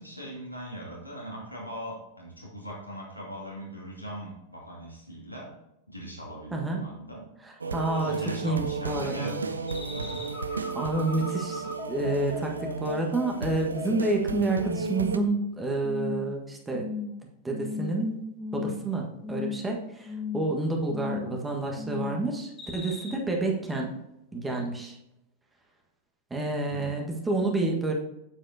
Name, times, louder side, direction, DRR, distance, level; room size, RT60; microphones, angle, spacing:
voice 1, 0.0-5.5 5.9-7.3 7.9-9.7 9.9-10.4 20.8-20.9 26.7-26.9, equal, 90° left, -5 dB, 2.8 m, -40 dB
voice 2, 6.5-6.8 7.4-8.1 8.4-9.4 10.7-16.9 17.4-18.2 18.5-23.9 24.3-25.0 26.3-27.9, right 2 dB, 10° right, 1 dB, 1.5 m, -29 dB
sound 1, 7.6-15.2, right 4 dB, 75° right, 0.5 m, -33 dB
sound 2, 9.7-14.6 15.0-15.5 15.8-16.3 16.7-17.1 17.5-18.1 18.4-18.9 19.2-19.7 20.0-20.5 20.9-21.4 21.8-22.2 22.6-23.1, left 4 dB, 20° left, 1.9 m, -36 dB
8.8 x 7.6 x 2.8 m, 0.87 s
figure-of-eight pair, 90°, 0 cm